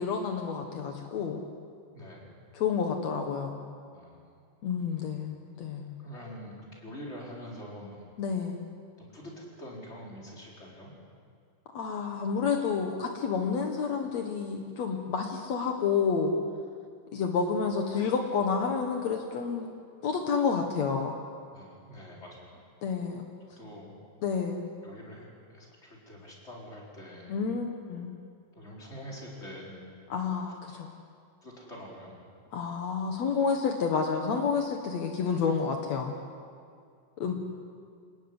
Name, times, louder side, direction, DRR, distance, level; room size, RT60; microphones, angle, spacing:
voice 1, 0.0-1.4 2.5-3.6 4.6-5.9 8.2-8.6 11.7-16.3 17.1-19.7 20.0-21.2 22.8-23.2 24.2-24.6 27.3-28.1 30.1-30.9 32.5-36.1 37.2-37.3, left 5 dB, 70° left, 3 dB, 1.7 m, -29 dB
voice 2, 1.9-2.3 3.9-4.3 4.9-5.1 6.0-8.1 9.0-10.9 21.5-22.6 23.6-24.0 24.8-25.3 25.5-27.4 28.5-29.8 30.7-30.8 31.4-32.2, equal, 15° left, -3 dB, 4.5 m, -45 dB
27.5 x 14.5 x 9.8 m, 2.2 s
omnidirectional pair, 5.2 m